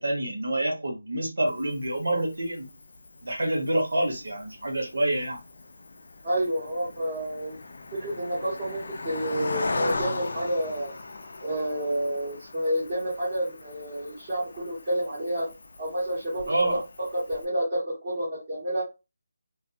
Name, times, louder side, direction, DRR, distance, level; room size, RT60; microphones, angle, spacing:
voice 1, 0.0-2.7 3.2-5.4 16.5-16.8, right 1 dB, 90° right, 2 dB, 1.1 m, -27 dB
Cricket, 1.5-17.5, left 3 dB, 50° left, 0.4 m, -39 dB
voice 2, 6.2-7.6 7.9-10.9 11.4-15.5 15.8-18.8, right 1 dB, 25° right, -9 dB, 1.1 m, -29 dB
2.6 x 2.5 x 2.3 m, 0.26 s
figure-of-eight pair, 175°, 0 cm